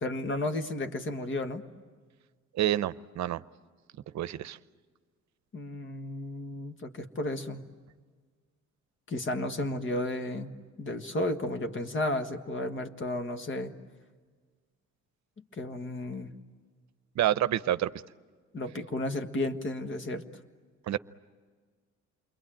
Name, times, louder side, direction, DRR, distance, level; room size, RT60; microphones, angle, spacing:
voice 1, 0.0-1.6 5.5-7.6 9.1-13.7 15.5-16.3 18.5-20.2, left 1 dB, 40° left, 7 dB, 1.7 m, -33 dB
voice 2, 2.5-3.4 4.1-4.6 17.2-17.9 20.9-21.0, right 12 dB, 65° right, 15 dB, 0.7 m, -28 dB
29.0 x 22.0 x 9.0 m, 1.5 s
cardioid pair, 90°, 30 cm